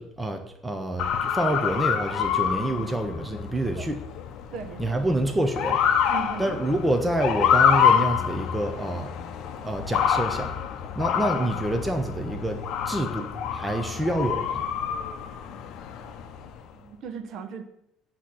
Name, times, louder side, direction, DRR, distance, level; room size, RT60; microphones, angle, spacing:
voice 1, 0.0-4.0 4.8-5.8 6.4-9.1 9.6-10.5 11.0-12.6 12.9-14.6, right 1 dB, 10° right, 5 dB, 0.5 m, -27 dB
Motor vehicle (road) / Siren, 1.0-16.6, left 8 dB, 60° left, 0.6 m, -27 dB
voice 2, 4.5-5.0 6.1-6.5 13.8-14.0 16.7-17.6, right 6 dB, 50° right, 8 dB, 0.7 m, -37 dB
8.0 x 2.9 x 6.1 m, 0.80 s
cardioid pair, 150°, 0 cm